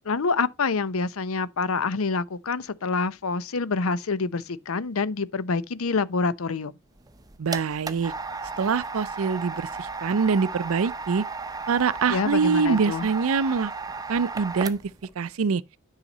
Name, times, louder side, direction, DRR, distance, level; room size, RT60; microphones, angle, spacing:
voice 1, 0.0-6.7 12.1-13.1, left 4 dB, 85° left, 0.7 m, -27 dB
sound 1, 7.0-15.1, right 4 dB, 15° right, 0.7 m, -35 dB
voice 2, 7.4-8.1 8.6-11.2 11.7-13.7 14.1-14.8 15.2-15.6, right 5 dB, 80° right, 0.5 m, -24 dB
9.9 x 5.7 x 4.0 m
head